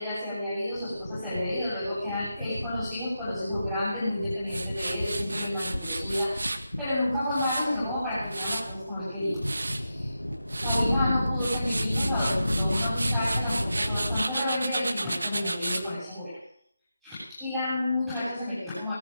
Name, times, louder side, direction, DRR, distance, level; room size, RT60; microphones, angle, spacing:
voice 1, 0.0-9.4 9.7-10.1 10.6-16.4 17.0-18.9, left 1 dB, ahead, -15 dB, 7.4 m, -31 dB
sound 1, 0.7-14.2, left 1 dB, 80° left, 1.3 m, -32 dB
Tools, 4.5-6.6 7.1-8.8 9.2-9.8 10.3-10.9 11.3-15.8, right 2 dB, 55° right, 1.7 m, -33 dB
18.5 x 13.5 x 5.3 m, 0.69 s
figure-of-eight pair, 160°, 0 cm